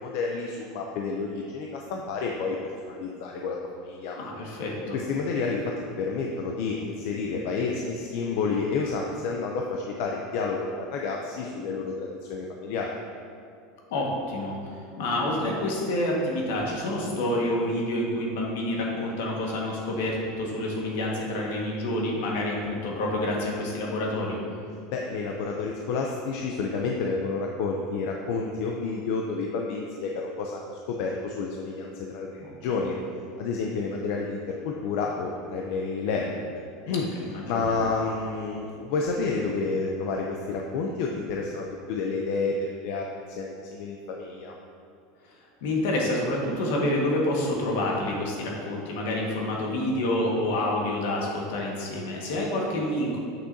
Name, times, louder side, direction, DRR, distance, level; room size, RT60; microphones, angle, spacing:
voice 1, 0.0-4.2 4.9-12.9 24.9-33.0 33.4-37.1 37.5-44.5, left 4 dB, 55° left, 0 dB, 0.5 m, -30 dB
voice 2, 4.2-5.0 13.9-24.4 32.4-32.5 36.9-37.8 45.2-45.3 45.6-53.2, left 1 dB, 75° left, -2 dB, 1.6 m, -28 dB
8.5 x 6.0 x 2.7 m, 2.4 s
supercardioid pair, 165°, 0 cm